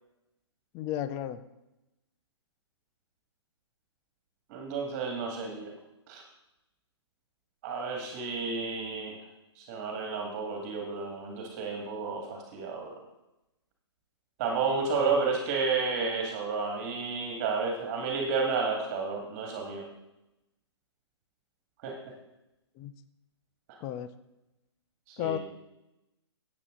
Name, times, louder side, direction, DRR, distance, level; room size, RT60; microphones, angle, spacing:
voice 1, 0.7-1.4 14.8-15.3 22.8-22.9 23.8-24.1 25.2-25.4, left 11 dB, 25° left, 13 dB, 0.5 m, -34 dB
voice 2, 4.5-5.7 6.1-6.2 7.6-9.2 9.6-13.0 14.4-19.9 21.8-21.9 25.1-25.4, right 4 dB, 35° right, 2 dB, 1.9 m, -31 dB
12.5 x 8.6 x 3.7 m, 0.93 s
hypercardioid pair, 135°, 15 cm